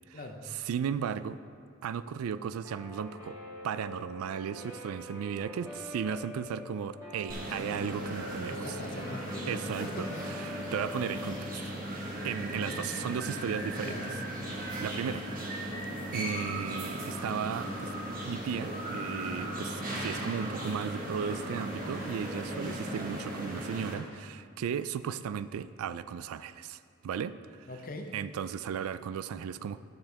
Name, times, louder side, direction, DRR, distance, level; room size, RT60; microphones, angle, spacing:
voice 1, 0.6-1.4 1.8-3.4 3.6-8.7 9.5-11.5 12.2-13.9 14.5-15.2 16.1-17.9 18.2-27.4 28.1-29.8, right 7 dB, 80° right, 15 dB, 0.3 m, -35 dB
Guitar, 2.6-11.3, left 1 dB, 15° right, 1.5 m, -44 dB
sound 1, 7.3-23.9, right 1 dB, 40° right, 1.2 m, -37 dB
voice 2, 8.5-10.2 12.4-12.6 13.8-14.1 22.5-22.8 27.7-28.1, left 2 dB, 40° left, 3 dB, 0.8 m, -42 dB
12.0 x 6.8 x 3.4 m, 2.2 s
head